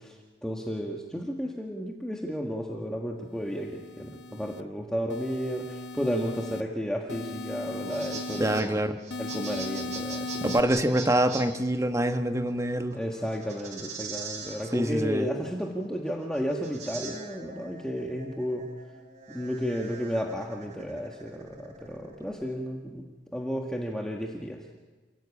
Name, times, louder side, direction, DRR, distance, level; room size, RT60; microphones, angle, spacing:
voice 1, 0.0-8.8 9.2-10.4 12.9-18.7 19.3-23.0 23.3-24.6, equal, 5° left, 0 dB, 1.7 m, -33 dB
sound 1, 3.5-4.6 5.1-6.6 7.1-8.6 9.1-10.6, left 2 dB, 85° left, 1.2 m, -38 dB
sound 2, 7.7-22.4, right 4 dB, 45° right, 3.6 m, -43 dB
voice 2, 8.4-9.0 10.4-13.0 14.7-15.3, right 1 dB, 20° right, 6 dB, 1.3 m, -25 dB
28.5 x 16.5 x 8.6 m, 1.3 s
head